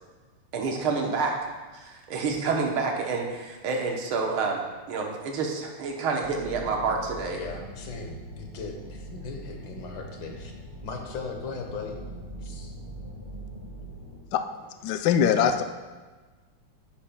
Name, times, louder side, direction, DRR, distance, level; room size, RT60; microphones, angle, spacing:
voice 1, 0.5-1.3 1.7-7.4, right 4 dB, 75° right, 1 dB, 1.8 m, -28 dB
sound 1, 6.2-14.2, right 1 dB, 15° right, 1.9 m, -42 dB
voice 2, 7.3-10.5 10.8-12.0 12.4-12.7, left 4 dB, 65° left, 3 dB, 1.7 m, -38 dB
voice 3, 14.8-15.6, left 8 dB, 90° left, 8 dB, 0.9 m, -22 dB
10.0 x 8.6 x 2.2 m, 1.3 s
omnidirectional pair, 2.4 m